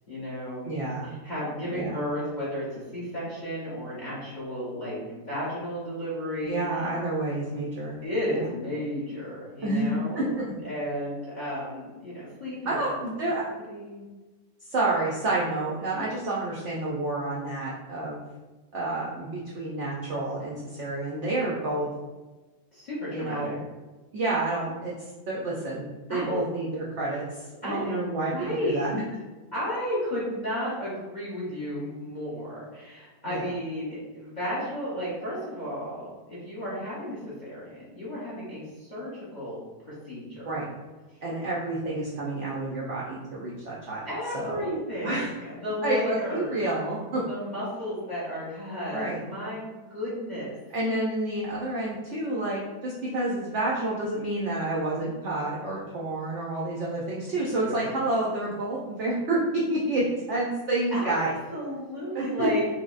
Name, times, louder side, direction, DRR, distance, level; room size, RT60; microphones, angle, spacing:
voice 1, 0.1-0.7 1.0-6.9 8.0-12.8 13.7-14.0 15.9-16.0 22.7-23.6 26.1-26.4 27.6-28.9 29.5-39.6 40.0-40.6 44.0-46.7 47.1-50.5 57.6-58.0 60.9-61.2 61.5-62.6, equal, 40° left, -8 dB, 0.7 m, -33 dB
voice 2, 0.6-1.1 1.7-2.0 6.4-8.0 8.3-8.5 9.6-10.2 12.7-13.4 14.7-18.2 18.7-21.9 23.1-23.6 24.1-25.8 26.1-28.3 28.6-29.0 33.3-33.4 40.5-40.7 41.2-44.0 44.3-44.7 45.0-45.3 45.8-47.2 48.9-49.2 50.7-61.3 62.1-62.5, right 2 dB, 75° right, -5 dB, 0.6 m, -29 dB
4.6 x 2.0 x 2.4 m, 1.2 s
omnidirectional pair, 1.8 m